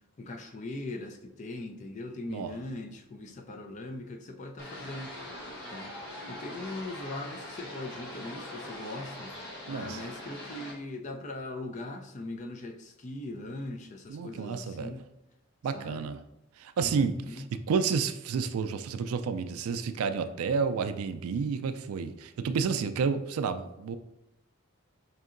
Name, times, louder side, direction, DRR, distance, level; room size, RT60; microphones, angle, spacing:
voice 1, 0.2-5.1 5.7-5.9 6.3-9.3 9.7-15.0 15.7-16.1 16.8-17.5, left 2 dB, 35° left, 0.3 m, -40 dB
sound 1, 4.6-10.7, left 1 dB, 50° left, 0.8 m, -42 dB
voice 2, 9.7-10.0 14.1-14.9 15.6-16.2 16.6-24.0, right 5 dB, 85° right, 0.3 m, -30 dB
5.1 x 2.7 x 2.5 m
head